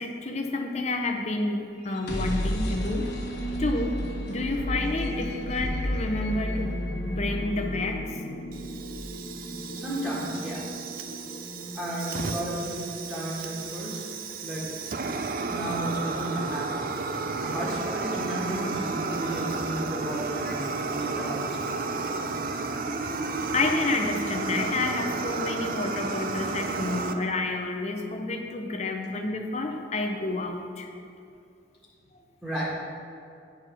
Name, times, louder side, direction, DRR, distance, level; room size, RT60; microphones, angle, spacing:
voice 1, 0.0-3.1 3.6-4.0 4.3-6.7 7.0-8.2 15.2-15.3 23.4-30.9, left 2 dB, 35° left, 3 dB, 0.7 m, -29 dB
sound 1, 1.8-15.6, equal, 60° left, 1.4 m, -34 dB
Fire, 8.5-27.1, right 3 dB, 50° right, 0.4 m, -32 dB
voice 2, 9.7-10.6 11.7-12.8 13.1-14.0 14.4-14.7 15.5-16.8 17.3-20.6 20.9-21.6 32.4-32.7, right 1 dB, 10° right, -9 dB, 1.6 m, -33 dB
9.1 x 4.2 x 6.2 m, 2.6 s
head